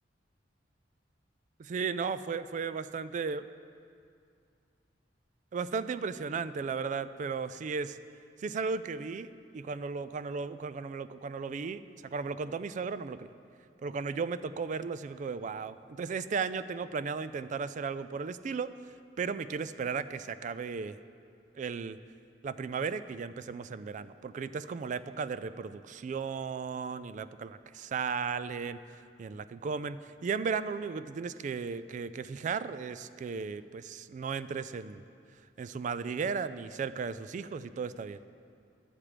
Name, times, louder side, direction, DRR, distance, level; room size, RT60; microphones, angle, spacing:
voice 1, 1.6-3.5 5.5-8.0 8.4-11.8 12.1-13.3 13.8-18.7 19.2-21.0 21.6-22.0 22.4-28.8 29.2-35.0 35.6-38.2, right 5 dB, 45° right, 14 dB, 0.3 m, -35 dB
12.0 x 7.3 x 5.0 m, 2.4 s
head